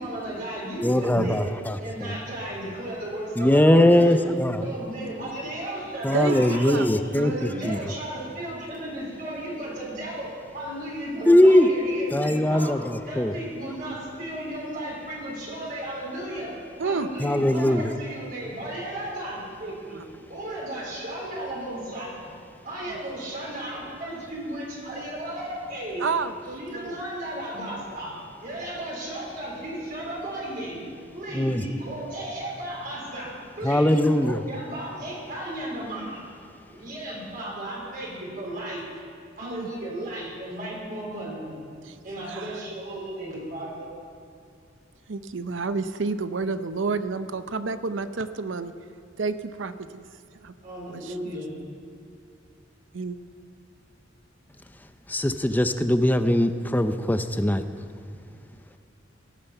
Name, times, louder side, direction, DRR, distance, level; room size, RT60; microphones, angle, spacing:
voice 1, 0.0-1.5 1.8-4.3 4.6-6.9 7.2-10.3 10.5-12.8 13.1-16.5 16.8-20.0 20.3-22.3 22.6-26.1 26.6-28.1 28.4-30.8 31.1-36.3 36.7-38.8 39.4-41.6 42.0-43.9 50.6-51.6, right 1 dB, 50° right, -5 dB, 4.0 m, -34 dB
voice 2, 0.8-2.1 3.4-4.6 6.0-7.3 7.6-7.8 11.3-11.7 12.1-13.3 17.2-17.9 31.3-31.6 33.6-34.4 55.1-57.6, left 1 dB, 10° left, 9 dB, 0.6 m, -20 dB
voice 3, 6.1-6.9 7.1-7.8 16.8-17.1 19.9-20.0 22.9-23.0 26.0-27.0 39.4-39.7 41.9-42.0 42.3-42.6 45.1-48.7 49.2-50.0 50.4-50.5 50.9-51.3 52.9-53.2, right 4 dB, 75° right, 11 dB, 0.6 m, -30 dB
18.0 x 10.5 x 5.7 m, 2.4 s
head